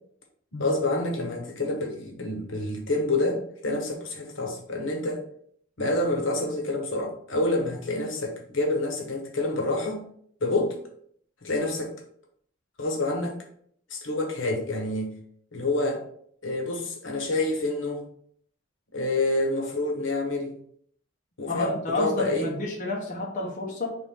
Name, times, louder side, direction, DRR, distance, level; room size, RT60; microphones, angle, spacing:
voice 1, 0.5-5.2 5.8-10.0 10.4-10.8 11.4-11.9 12.8-13.4 13.9-15.2 15.5-16.0 16.4-18.0 18.9-20.5 21.4-22.5, left 2 dB, 80° left, 1 dB, 1.1 m, -27 dB
voice 2, 21.5-24.0, left 2 dB, 40° left, -2 dB, 1.0 m, -30 dB
4.5 x 3.2 x 3.6 m, 0.63 s
head